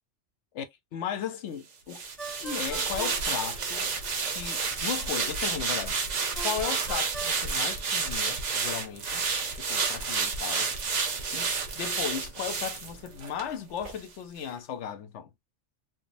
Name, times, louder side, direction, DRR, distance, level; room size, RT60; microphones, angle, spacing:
voice 1, 0.9-2.0 2.3-3.9 4.3-6.0 6.4-9.3 9.6-10.7 11.3-15.3, left 8 dB, 80° left, 0.9 m, -36 dB
sound 1, 1.9-13.5 13.8-14.0, right 5 dB, 45° right, 0.7 m, -30 dB
Ringtone, 2.2-4.1 6.4-8.3, right 3 dB, ahead, 0.6 m, -42 dB
3.5 x 2.2 x 2.5 m
omnidirectional pair, 1.2 m